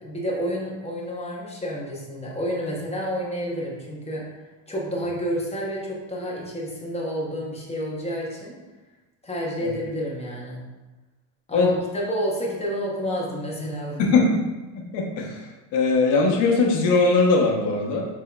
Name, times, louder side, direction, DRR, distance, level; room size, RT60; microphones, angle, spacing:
voice 1, 0.0-4.2 4.7-8.5 9.2-10.6 11.5-14.0, equal, 15° left, -3 dB, 0.7 m, -29 dB
voice 2, 14.9-15.4 15.7-18.1, left 3 dB, 60° left, 0 dB, 0.9 m, -20 dB
5.2 x 3.5 x 2.2 m, 1.1 s
cardioid pair, 140°, 49 cm